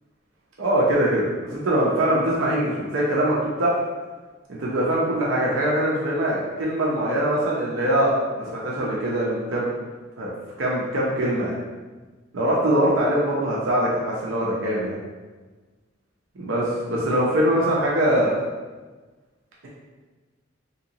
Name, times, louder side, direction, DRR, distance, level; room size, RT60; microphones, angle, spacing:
voice 1, 0.6-3.8 4.5-9.7 10.2-10.3 10.6-11.6 12.3-15.0 16.4-18.4, right 1 dB, 75° right, -5 dB, 0.7 m, -22 dB
3.3 x 2.9 x 2.7 m, 1.3 s
head